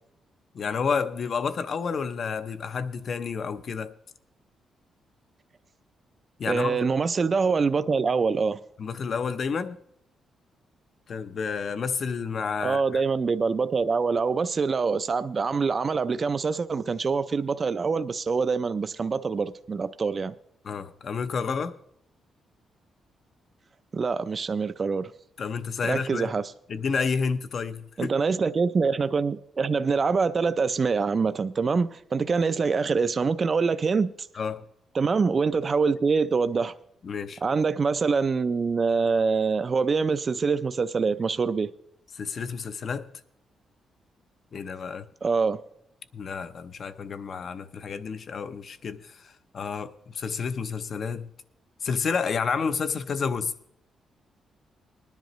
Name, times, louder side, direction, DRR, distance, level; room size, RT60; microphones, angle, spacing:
voice 1, 0.5-3.9 6.4-6.8 8.8-9.8 11.1-13.0 20.6-21.8 25.4-26.3 26.7-28.1 34.3-34.6 37.0-37.4 42.1-43.1 44.5-45.1 46.1-51.3 51.8-53.5, left 5 dB, 50° left, 0.6 m, -30 dB
voice 2, 6.5-8.6 12.6-20.3 23.9-25.1 25.8-26.5 28.0-34.1 34.9-36.7 37.4-41.7 45.2-45.6, right 5 dB, 35° right, 0.4 m, -25 dB
20.0 x 10.5 x 3.1 m
cardioid pair, 110°, 0 cm